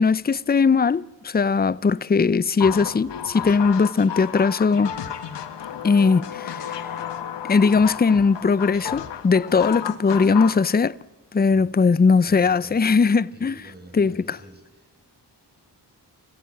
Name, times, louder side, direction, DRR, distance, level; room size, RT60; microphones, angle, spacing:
voice 1, 0.0-4.9 5.8-6.9 7.4-11.0 11.3-13.5 13.9-14.4, left 5 dB, 25° left, 0.6 m, -19 dB
sound 1, 2.6-10.6, left 9 dB, 85° left, 1.3 m, -32 dB
voice 2, 12.2-13.0 13.3-15.2, right 1 dB, 25° right, 7.0 m, -47 dB
29.0 x 15.5 x 8.5 m
cardioid pair, 45°, 42 cm